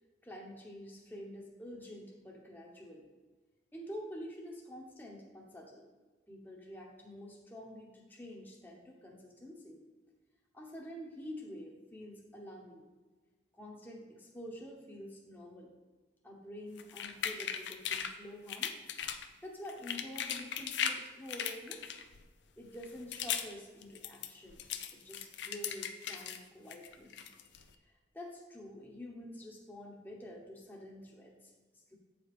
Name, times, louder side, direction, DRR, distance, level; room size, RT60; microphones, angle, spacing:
voice 1, 0.2-3.1 3.7-5.9 6.3-9.8 10.5-12.8 13.5-15.7 16.2-18.8 19.4-22.0 22.6-24.6 24.9-27.3 27.7-32.0, left 1 dB, 10° left, -1 dB, 1.0 m, -48 dB
sound 1, 16.8-18.1 18.5-19.3 19.7-21.0 21.3-22.2 22.7-23.5 23.8-26.4 26.7-27.6, left 8 dB, 80° left, 0.6 m, -38 dB
8.7 x 4.9 x 4.9 m, 1.3 s
head